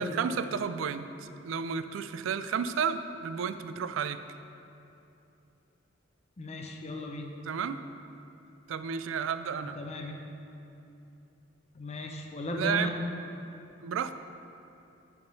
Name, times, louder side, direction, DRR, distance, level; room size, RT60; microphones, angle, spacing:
voice 1, 0.0-4.2 7.5-7.8 8.7-9.8 12.5-12.9 13.8-14.1, right 6 dB, 80° right, 11 dB, 0.3 m, -32 dB
voice 2, 6.4-7.3 9.7-10.1 11.7-13.0, left 1 dB, 35° left, 2 dB, 0.6 m, -36 dB
9.2 x 3.6 x 5.4 m, 2.8 s
head